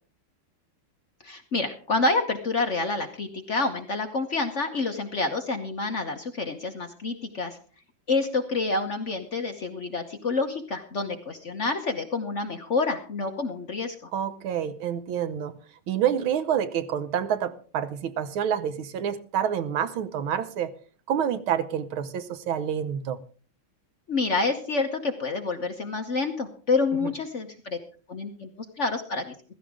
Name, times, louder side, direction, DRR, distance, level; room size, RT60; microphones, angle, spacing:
voice 1, 1.2-7.6 8.1-14.1 24.1-27.8 28.1-28.5 28.8-29.3, left 3 dB, 45° left, 1.0 m, -28 dB
voice 2, 14.1-15.5 15.9-20.7 21.1-23.2 27.0-27.1, right 9 dB, 75° right, 1.7 m, -28 dB
15.5 x 13.5 x 3.6 m
omnidirectional pair, 2.3 m